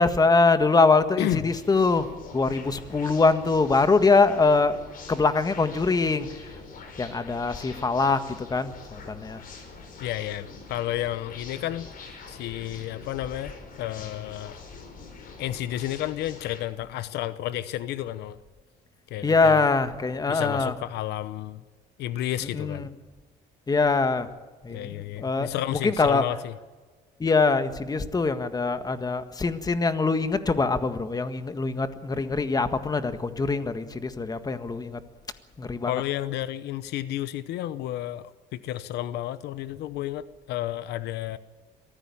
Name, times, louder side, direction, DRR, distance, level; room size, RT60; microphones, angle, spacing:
voice 1, 0.0-4.8 5.1-6.5 7.0-9.4 19.2-20.7 22.5-22.9 23.7-24.3 24.6-26.2 27.2-35.0 35.6-36.0, left 3 dB, 20° left, 10 dB, 1.7 m, -23 dB
voice 2, 1.2-1.6 10.0-11.9 12.3-14.6 15.4-18.4 19.1-19.6 20.3-21.6 22.0-22.9 24.7-26.5 35.9-41.4, left 13 dB, 80° left, 15 dB, 0.9 m, -31 dB
sound 1, 1.5-16.6, left 4 dB, 55° left, 5.5 m, -44 dB
23.0 x 15.5 x 8.6 m, 1.3 s
cardioid pair, 110°, 17 cm